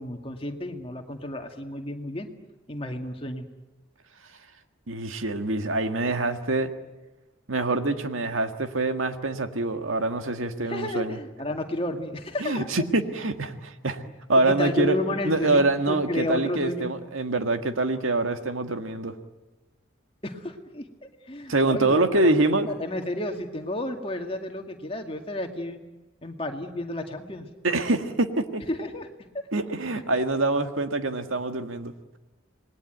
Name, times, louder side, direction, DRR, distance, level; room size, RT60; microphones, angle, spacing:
voice 1, 0.0-2.3 2.7-3.4 10.6-12.7 14.4-16.9 20.2-20.9 21.2-22.3 22.7-25.8 26.2-27.5 28.7-29.4 29.9-30.0, left 1 dB, 25° left, 4 dB, 2.1 m, -32 dB
voice 2, 4.9-6.7 7.5-11.2 12.4-14.0 14.3-15.0 15.2-19.1 21.5-22.7 27.6-28.6 29.5-31.9, right 2 dB, 80° right, 8 dB, 1.8 m, -25 dB
27.0 x 20.5 x 9.2 m, 1.1 s
head